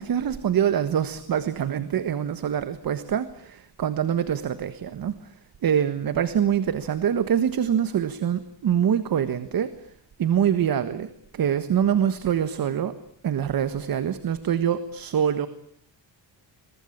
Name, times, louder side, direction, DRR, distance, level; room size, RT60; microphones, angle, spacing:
voice 1, 0.0-5.3 5.6-9.9 10.2-12.9 13.2-15.5, right 9 dB, 50° right, 12 dB, 1.5 m, -25 dB
28.0 x 23.0 x 8.7 m, 0.63 s
wide cardioid pair, 175°, 44 cm